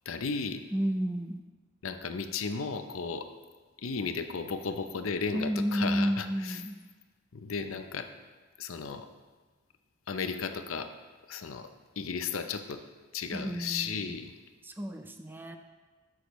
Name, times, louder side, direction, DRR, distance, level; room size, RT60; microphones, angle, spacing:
voice 1, 0.1-0.6 1.8-3.3 3.8-6.6 7.3-8.1 8.6-9.1 10.1-10.9 11.3-11.7 12.0-12.8 13.1-14.3, left 5 dB, 90° left, 8 dB, 0.6 m, -34 dB
voice 2, 0.7-1.4 5.3-6.8 13.3-14.1 14.6-15.6, equal, 10° right, 5 dB, 0.4 m, -31 dB
13.0 x 6.4 x 3.1 m, 1.3 s
head